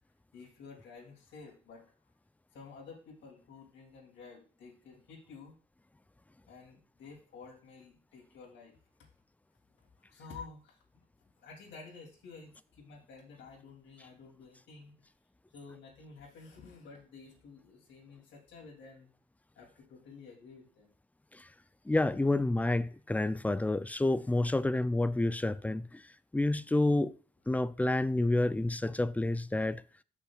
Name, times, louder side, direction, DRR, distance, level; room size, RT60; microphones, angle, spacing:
voice 1, 0.3-1.8 2.5-5.5 6.5-8.8 10.0-11.1 11.4-15.1 15.5-19.1 19.5-20.9 22.2-22.3, left 4 dB, 70° left, 2.9 m, -51 dB
voice 2, 21.9-26.0 26.3-27.1 27.5-29.8, left 2 dB, 10° left, 0.4 m, -29 dB
14.5 x 5.7 x 2.4 m
cardioid pair, 90°, 20 cm